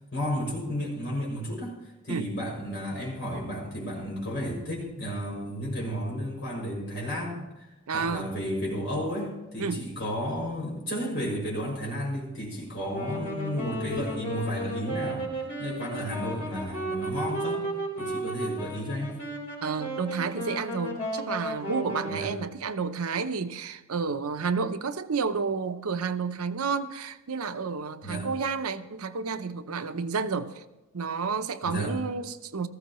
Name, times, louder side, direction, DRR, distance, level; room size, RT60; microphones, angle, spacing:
voice 1, 0.1-1.8 2.0-7.7 7.9-15.3 15.6-17.7 18.0-19.2 22.1-22.3 28.0-28.3 31.6-31.9, equal, 50° left, -3 dB, 6.2 m, -32 dB
voice 2, 7.9-8.3 9.6-9.8 19.6-30.6 30.9-32.7, right 5 dB, 80° right, 10 dB, 0.7 m, -30 dB
Wind instrument woodwind instrument, 12.8-22.5, right 1 dB, 75° left, 4.3 m, -34 dB
18.5 x 14.5 x 3.1 m, 1.0 s
head